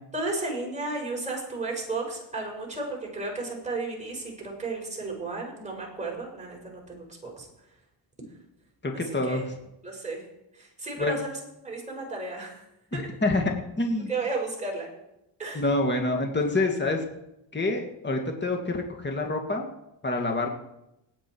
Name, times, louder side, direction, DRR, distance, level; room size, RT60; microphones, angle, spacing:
voice 1, 0.1-7.5 8.9-9.4 9.8-10.2 10.5-12.6 12.9-13.1 14.1-14.9 15.4-15.6, right 3 dB, 15° right, -2 dB, 6.1 m, -33 dB
voice 2, 8.8-9.5 11.0-11.2 12.9-14.1 15.5-17.0 17.5-19.7 20.0-20.5, left 2 dB, 25° left, 3 dB, 2.3 m, -27 dB
19.0 x 9.1 x 4.8 m, 0.85 s
cardioid pair, 85°, 45 cm